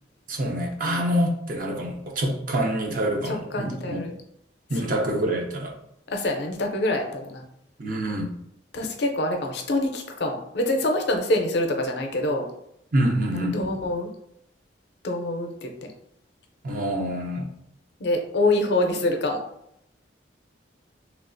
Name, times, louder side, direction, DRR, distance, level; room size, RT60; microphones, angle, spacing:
voice 1, 0.3-4.0 4.7-5.7 7.8-8.3 12.9-13.6 16.6-17.5, right 1 dB, 50° right, 1 dB, 0.6 m, -26 dB
voice 2, 3.5-4.2 6.1-7.4 8.7-12.4 13.5-14.1 15.0-15.9 18.0-19.4, left 1 dB, 65° left, 3 dB, 0.5 m, -25 dB
3.3 x 2.4 x 2.5 m, 0.75 s
head